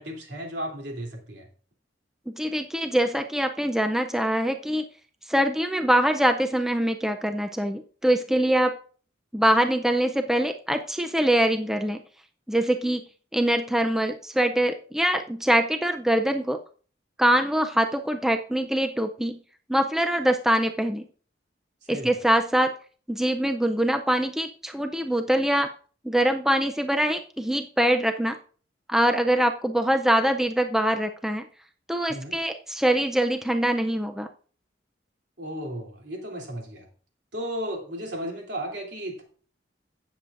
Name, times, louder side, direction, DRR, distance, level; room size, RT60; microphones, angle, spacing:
voice 1, 0.0-1.5 21.8-22.1 32.1-32.4 35.4-36.9 37.3-39.2, equal, 70° right, 1 dB, 3.0 m, -34 dB
voice 2, 2.3-4.8 5.3-8.7 9.3-12.0 12.5-13.0 13.3-16.6 17.2-19.4 19.7-21.0 21.9-22.7 23.1-25.7 26.0-28.4 28.9-31.4 31.9-34.3, right 1 dB, 5° right, 6 dB, 0.4 m, -23 dB
16.5 x 7.2 x 2.5 m, 0.42 s
head